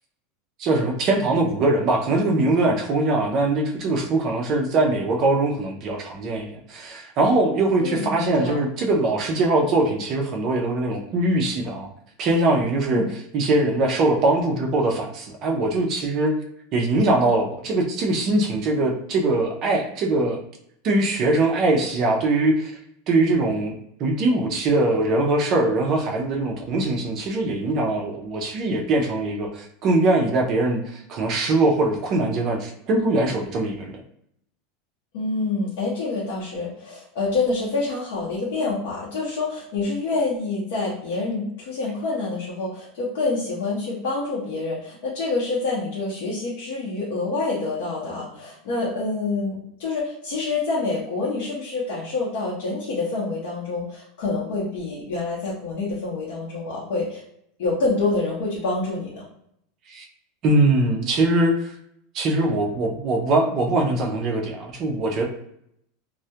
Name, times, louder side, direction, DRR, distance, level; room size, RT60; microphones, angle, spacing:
voice 1, 0.6-11.9 12.2-13.0 13.3-16.3 16.7-20.4 20.8-22.7 23.1-23.7 24.0-34.0 59.9-60.1 60.4-61.7 62.1-65.2, right 2 dB, 35° right, 1 dB, 0.4 m, -22 dB
voice 2, 7.8-8.6 12.9-13.1 35.1-57.2 57.6-59.2, left 3 dB, 65° left, -6 dB, 0.7 m, -27 dB
2.2 x 2.1 x 2.7 m, 0.74 s
supercardioid pair, 170°, 0 cm